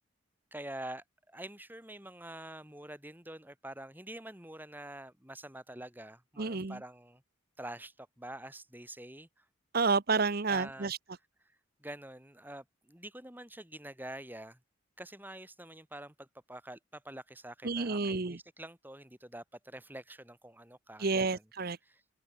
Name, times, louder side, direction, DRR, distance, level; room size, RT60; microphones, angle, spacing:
voice 1, 0.5-7.2 7.6-9.4 10.5-10.9 11.8-14.6 15.0-21.5 21.8-22.0, right 1 dB, 10° right, 6.6 m, -46 dB
voice 2, 6.4-6.8 9.7-11.0 17.6-18.4 21.0-21.8, right 4 dB, 45° right, 0.8 m, -30 dB
head